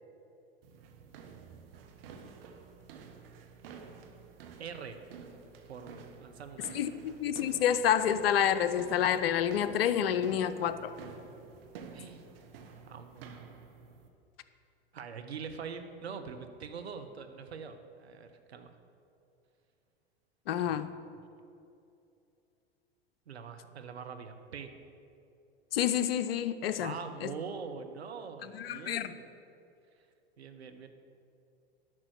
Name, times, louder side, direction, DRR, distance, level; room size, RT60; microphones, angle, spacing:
sound 1, 0.6-14.1, right 6 dB, 65° right, 1.3 m, -50 dB
voice 1, 4.6-5.0 5.7-6.7 11.9-12.3 12.9-13.3 14.9-18.7 20.6-21.2 23.3-24.7 26.8-29.3 30.4-30.9, right 6 dB, 85° right, 7 dB, 1.0 m, -43 dB
voice 2, 6.7-10.9 20.5-20.9 25.7-26.9 27.2-27.3 28.4-29.1, left 9 dB, 70° left, 11 dB, 0.7 m, -29 dB
11.0 x 6.1 x 7.7 m, 2.6 s
hypercardioid pair, 95°, 31 cm